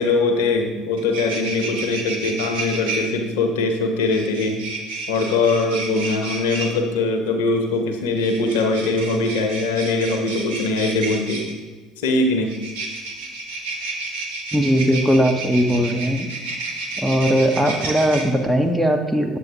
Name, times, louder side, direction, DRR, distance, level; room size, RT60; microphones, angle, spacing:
voice 1, 0.0-4.6 5.1-11.5 12.0-12.5, left 3 dB, 65° left, 5 dB, 0.9 m, -21 dB
sound 1, 0.6-0.7 0.9-3.0 4.1-6.7 8.1-11.5 12.5-18.2, right 3 dB, 70° right, 1.0 m, -31 dB
voice 2, 14.5-16.3 17.0-19.4, equal, 5° right, 3 dB, 0.8 m, -19 dB
7.8 x 7.8 x 2.9 m, 1.3 s
figure-of-eight pair, 65°, 0 cm